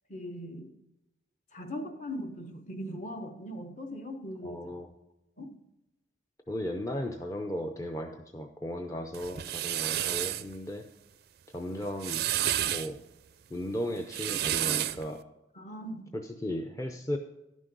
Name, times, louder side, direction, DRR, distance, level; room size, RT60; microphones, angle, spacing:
voice 1, 0.1-0.7 1.5-4.7 5.4-5.6 15.5-16.1, equal, 40° left, 7 dB, 0.9 m, -40 dB
voice 2, 4.4-4.9 6.5-10.8 11.5-12.3 12.7-13.0 13.5-15.2 16.1-17.2, equal, 15° left, 4 dB, 0.5 m, -36 dB
sound 1, 9.1-10.4 11.8-12.9 14.0-15.1, right 12 dB, 55° right, 0.4 m, -30 dB
11.0 x 6.3 x 5.3 m, 0.97 s
head